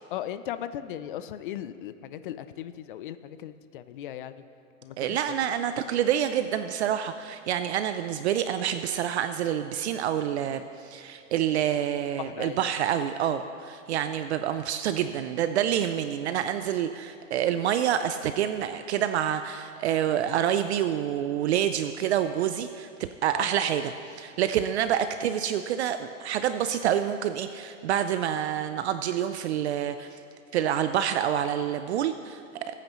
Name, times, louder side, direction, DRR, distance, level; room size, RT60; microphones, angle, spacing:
voice 1, 0.1-4.4 4.8-5.2 12.2-12.7 23.3-23.5, left 11 dB, 40° left, 13 dB, 0.5 m, -37 dB
voice 2, 5.0-30.2 30.5-32.7, right 10 dB, 55° right, 10 dB, 0.5 m, -27 dB
20.5 x 9.0 x 3.1 m, 2.7 s
hypercardioid pair, 150°, 40 cm